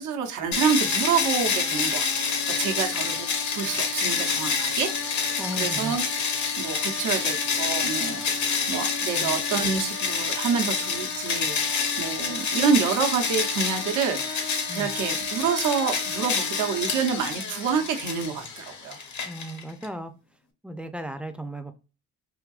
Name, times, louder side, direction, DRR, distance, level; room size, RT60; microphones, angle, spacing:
voice 1, 0.0-2.3 2.6-19.0, right 6 dB, 80° right, 4 dB, 0.9 m, -28 dB
sound 1, 0.5-19.9, left 5 dB, 65° left, 0.9 m, -28 dB
voice 2, 5.4-5.9 9.1-9.3 14.7-15.0 19.2-20.1 20.6-21.8, right 1 dB, 5° right, 9 dB, 0.4 m, -36 dB
3.6 x 2.7 x 2.3 m, 0.31 s
cardioid pair, 90°, 30 cm